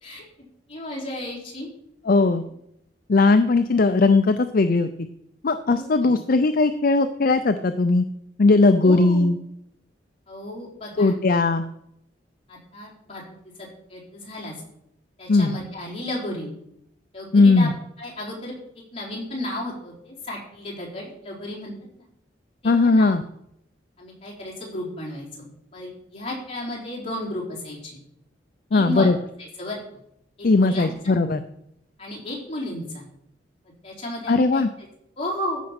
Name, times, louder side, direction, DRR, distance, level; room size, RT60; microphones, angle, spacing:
voice 1, 0.7-1.7 2.1-2.2 5.6-6.1 8.8-9.3 10.3-11.2 12.5-13.2 13.9-14.5 15.2-16.5 17.1-17.7 18.0-18.5 18.9-21.7 22.0-22.1 22.6-23.1 24.0-25.4 25.7-28.0 28.7-29.1 29.4-29.8 30.4-31.2 32.0-33.0 33.8-34.6 35.2-35.6, left 1 dB, 30° left, -4 dB, 4.2 m, -33 dB
voice 2, 2.1-2.4 3.1-4.9 5.4-8.0 8.4-9.4 11.0-11.7 15.3-15.6 17.3-17.7 22.6-23.2 28.7-29.2 30.4-31.4 34.3-34.7, left 3 dB, 50° left, 10 dB, 0.5 m, -18 dB
14.5 x 5.3 x 5.9 m, 0.77 s
head